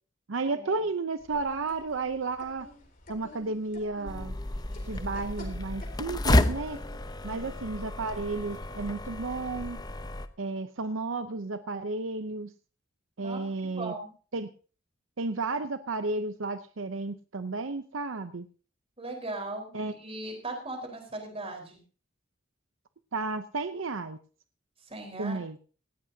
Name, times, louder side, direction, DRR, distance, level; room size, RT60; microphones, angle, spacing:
voice 1, 0.3-2.7 3.1-4.3 4.9-6.8 7.2-9.8 10.4-12.5 13.2-13.9 14.3-14.5 15.2-18.5 19.7-19.9 23.1-24.2 25.2-25.6, right 3 dB, 80° right, 11 dB, 0.8 m, -32 dB
sound 1, 1.2-7.1, left 1 dB, 45° left, 4.0 m, -51 dB
sound 2, 4.1-10.3, left 1 dB, 20° left, 0.8 m, -31 dB
voice 2, 7.2-7.5 13.2-14.1 19.0-21.8 24.8-25.4, right 2 dB, 30° right, 3 dB, 4.4 m, -39 dB
18.5 x 15.0 x 2.8 m, 0.38 s
head